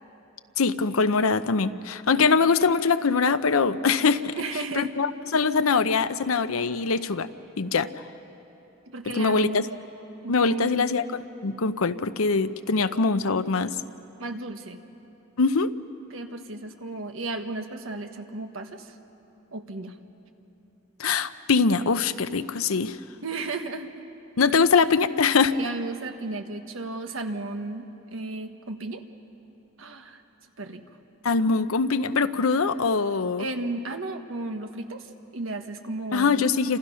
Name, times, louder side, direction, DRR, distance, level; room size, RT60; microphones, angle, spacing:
voice 1, 0.6-4.3 4.7-7.3 7.6-7.9 9.1-9.6 10.3-13.8 15.4-15.7 21.0-23.0 24.4-25.5 31.2-33.5 36.1-36.8, left 4 dB, 85° left, 12 dB, 0.7 m, -23 dB
voice 2, 4.3-4.9 8.9-9.7 10.2-10.9 14.2-14.8 16.1-18.9 19.5-20.0 23.2-24.0 25.6-29.0 29.8-30.2 30.6-30.8 33.4-36.4, right 2 dB, 70° right, 6 dB, 1.4 m, -34 dB
29.0 x 27.0 x 5.7 m, 3.0 s
head